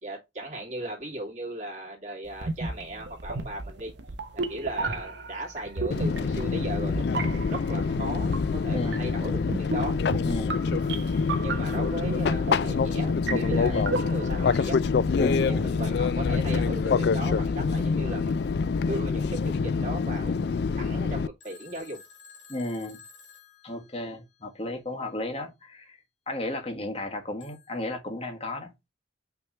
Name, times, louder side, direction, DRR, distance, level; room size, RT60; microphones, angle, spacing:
voice 1, 0.0-3.9 4.3-10.0 11.4-14.8 15.5-18.5 18.8-20.4 20.8-22.0, right 1 dB, 40° right, 2.8 m, -37 dB
sound 1, 2.3-14.5, right 3 dB, 65° right, 0.9 m, -34 dB
Fixed-wing aircraft airplane, 5.9-21.3, left 5 dB, 60° left, 0.4 m, -26 dB
voice 2, 8.7-9.0 10.3-10.6 13.7-13.9 15.2-15.7 22.5-23.0 23.6-26.0 26.3-28.9, left 1 dB, 35° left, 1.6 m, -34 dB
Telephone, 21.4-24.4 27.4-27.9, left 5 dB, 80° left, 1.7 m, -52 dB
5.9 x 3.5 x 5.5 m
head